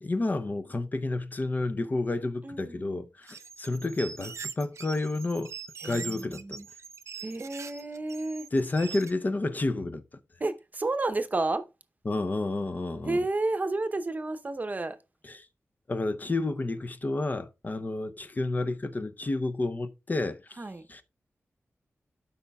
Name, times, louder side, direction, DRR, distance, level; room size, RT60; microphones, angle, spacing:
voice 1, 0.0-5.5 5.8-6.6 8.5-10.0 12.1-13.2 15.2-15.5 15.9-20.6 20.9-21.0, left 2 dB, 35° left, 0.6 m, -30 dB
voice 2, 2.4-3.1 5.8-6.7 7.2-8.5 10.4-11.7 13.0-15.0 20.6-20.8, right 2 dB, 35° right, 0.7 m, -31 dB
sound 1, 3.2-9.1, right 6 dB, 70° right, 0.5 m, -42 dB
12.5 x 5.5 x 2.3 m
wide cardioid pair, 115°, 5 cm